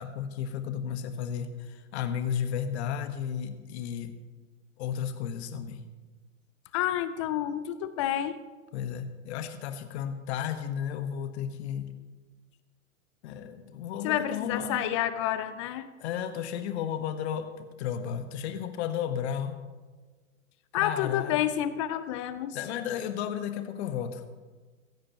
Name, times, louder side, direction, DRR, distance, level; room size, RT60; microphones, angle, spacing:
voice 1, 0.0-4.1 4.8-5.8 8.7-11.9 13.2-14.8 16.0-19.6 20.7-21.4 22.5-24.3, left 8 dB, 55° left, 8 dB, 1.5 m, -33 dB
voice 2, 6.7-8.4 14.0-15.9 20.7-22.6, left 12 dB, 25° left, 13 dB, 0.4 m, -29 dB
16.5 x 15.5 x 3.1 m, 1.3 s
hypercardioid pair, 115°, 41 cm